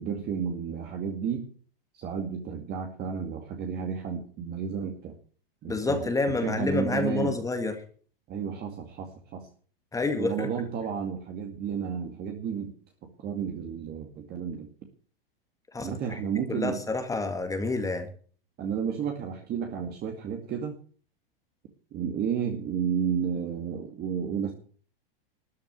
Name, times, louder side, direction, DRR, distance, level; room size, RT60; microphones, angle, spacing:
voice 1, 0.0-1.5 1.9-5.1 5.6-6.1 6.4-7.3 8.3-9.5 10.2-12.7 13.2-14.7 15.8-16.8 18.6-20.8 21.9-24.5, right 7 dB, 35° right, 3 dB, 2.3 m, -32 dB
voice 2, 5.7-7.7 9.9-10.5 15.7-16.2 16.5-18.1, left 3 dB, 10° left, 6 dB, 1.9 m, -28 dB
13.0 x 7.1 x 9.3 m, 0.44 s
hypercardioid pair, 120°, 29 cm